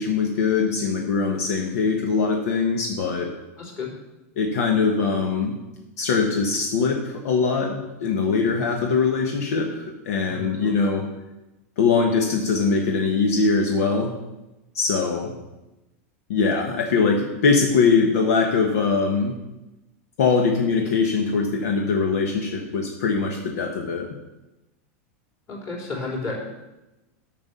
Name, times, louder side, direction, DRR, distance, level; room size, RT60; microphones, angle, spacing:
voice 1, 0.0-3.3 4.4-5.5 6.0-11.0 11.8-14.1 14.7-15.3 16.3-19.4 20.2-24.1, left 4 dB, 75° left, 2 dB, 1.3 m, -22 dB
voice 2, 3.6-3.9 10.3-10.9 25.5-26.4, left 3 dB, 35° left, -3 dB, 3.9 m, -32 dB
8.8 x 6.2 x 6.9 m, 1.0 s
supercardioid pair, 135°, 8 cm